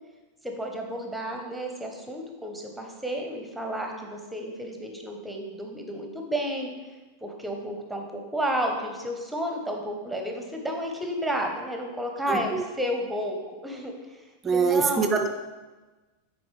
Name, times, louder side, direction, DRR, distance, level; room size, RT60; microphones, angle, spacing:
voice 1, 0.4-6.7 7.2-14.2 14.5-15.1, equal, 5° right, 2 dB, 1.0 m, -32 dB
voice 2, 12.3-12.6 14.4-15.3, right 5 dB, 20° right, 5 dB, 0.5 m, -24 dB
9.2 x 4.3 x 3.3 m, 1.2 s
figure-of-eight pair, 90°, 0 cm